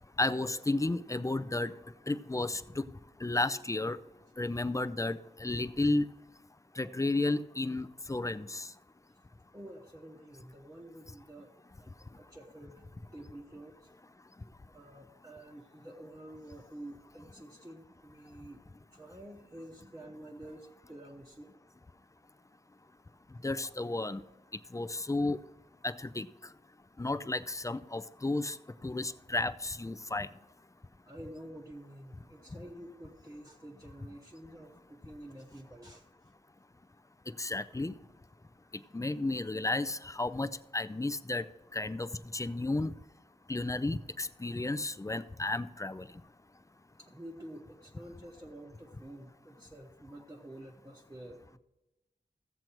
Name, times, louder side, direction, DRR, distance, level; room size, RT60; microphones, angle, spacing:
voice 1, 0.2-1.7 2.1-2.8 3.2-4.0 4.4-6.1 6.8-8.7 23.4-24.2 24.7-25.4 25.8-26.3 27.0-28.6 28.8-30.3 37.4-37.9 38.9-41.5 41.7-42.9 43.5-46.1, left 2 dB, 15° left, 12 dB, 0.4 m, -32 dB
voice 2, 9.5-11.5 11.8-11.9 12.2-12.8 13.1-13.9 14.7-18.6 18.9-21.5 31.1-36.0 47.0-51.6, right 1 dB, 15° right, -2 dB, 0.9 m, -49 dB
15.5 x 7.7 x 3.0 m, 1.0 s
wide cardioid pair, 90°, 19 cm